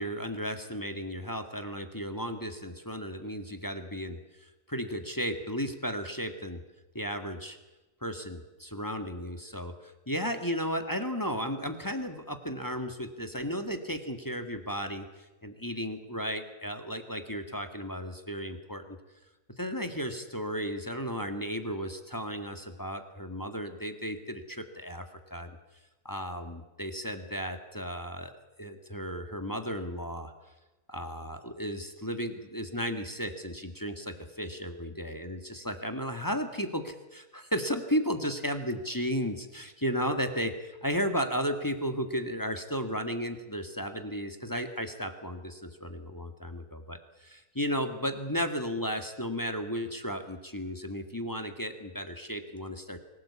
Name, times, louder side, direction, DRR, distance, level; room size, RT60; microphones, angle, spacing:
voice 1, 0.0-6.6 6.9-7.6 8.0-19.0 19.6-25.5 26.1-28.3 28.6-30.3 30.9-53.0, equal, 15° left, 7 dB, 1.8 m, -34 dB
24.5 x 17.5 x 8.5 m, 1.1 s
omnidirectional pair, 1.6 m